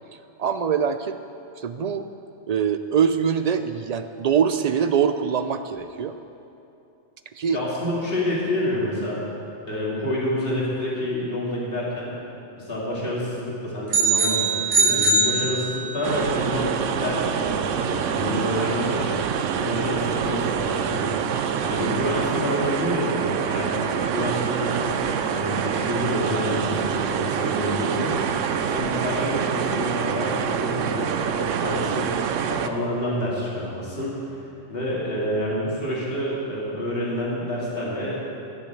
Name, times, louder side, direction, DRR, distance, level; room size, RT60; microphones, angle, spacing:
voice 1, 0.4-1.2 1.6-2.1 2.5-6.2 7.4-7.6, right 7 dB, 75° right, 9 dB, 0.3 m, -23 dB
voice 2, 7.5-9.2 9.7-12.1 12.6-14.5 14.8-19.2 19.6-34.2 34.7-38.3, left 1 dB, 50° left, -6 dB, 2.9 m, -28 dB
sound 1, 13.9-16.1, right 3 dB, 55° right, 1.8 m, -21 dB
sound 2, 16.0-32.7, right 7 dB, 90° right, 1.0 m, -26 dB
13.0 x 7.0 x 8.1 m, 2.8 s
omnidirectional pair, 1.3 m